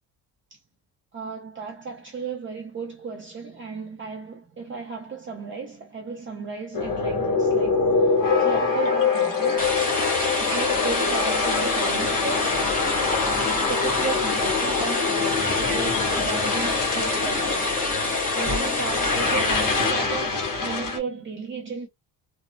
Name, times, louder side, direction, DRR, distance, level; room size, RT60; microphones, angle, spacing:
voice 1, 1.1-9.8 10.4-12.7 13.2-15.2 15.6-17.8 18.3-21.9, right 5 dB, 30° right, 0.6 m, -35 dB
sound 1, 6.7-21.0, left 4 dB, 50° left, 1.1 m, -25 dB
sound 2, 9.6-19.9, left 3 dB, 20° left, 1.0 m, -26 dB
3.1 x 2.1 x 2.4 m
cardioid pair, 155°, 41 cm